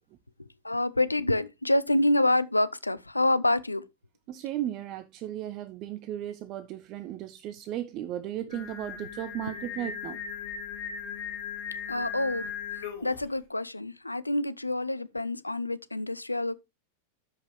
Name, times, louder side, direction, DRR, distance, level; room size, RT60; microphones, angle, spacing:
voice 1, 0.6-3.8 11.9-16.6, left 1 dB, 85° left, 0.4 m, -27 dB
voice 2, 4.3-10.2, right 12 dB, 40° right, 0.5 m, -35 dB
Singing, 8.5-13.2, left 6 dB, 60° left, 3.3 m, -37 dB
13.0 x 5.2 x 3.1 m
figure-of-eight pair, 90°, 0 cm